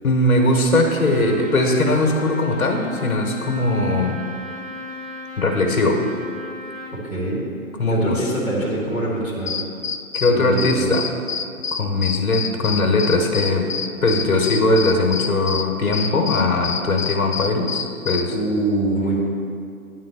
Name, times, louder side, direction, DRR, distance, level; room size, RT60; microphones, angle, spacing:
voice 1, 0.0-4.2 5.4-6.0 7.8-8.3 10.1-11.1 11.7-13.7 14.0-18.3, left 2 dB, 75° left, 2 dB, 1.4 m, -20 dB
Trumpet, 0.9-7.0, left 2 dB, 25° right, 1.1 m, -36 dB
voice 2, 6.9-7.4 7.9-9.5 10.3-10.8 18.3-19.3, right 2 dB, ahead, -8 dB, 1.5 m, -24 dB
sound 1, 9.5-18.3, left 6 dB, 45° left, 0.4 m, -28 dB
9.8 x 3.8 x 6.8 m, 2.3 s
figure-of-eight pair, 135°, 43 cm